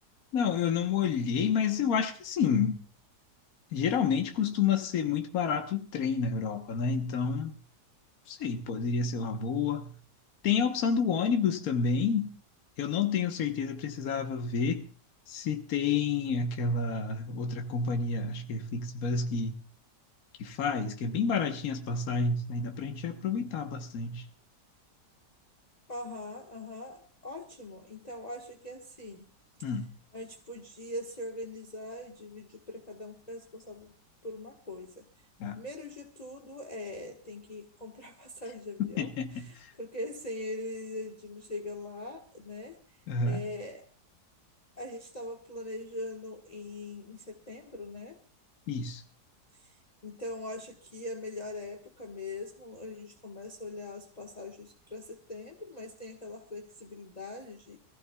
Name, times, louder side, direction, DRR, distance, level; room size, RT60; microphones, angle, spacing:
voice 1, 0.3-2.8 3.7-7.6 8.3-9.9 10.4-12.3 12.8-14.8 15.3-19.6 20.4-24.2 29.6-29.9 35.4-35.6 38.8-39.4 43.1-43.4 48.7-49.0, left 5 dB, 60° left, 1.5 m, -29 dB
voice 2, 25.9-29.3 29.6-29.7 30.1-33.9 34.2-35.1 35.5-42.8 43.2-43.8 44.8-48.2 49.6-49.8 50.0-57.8, left 2 dB, 25° left, 1.4 m, -41 dB
24.0 x 15.5 x 2.3 m
omnidirectional pair, 1.8 m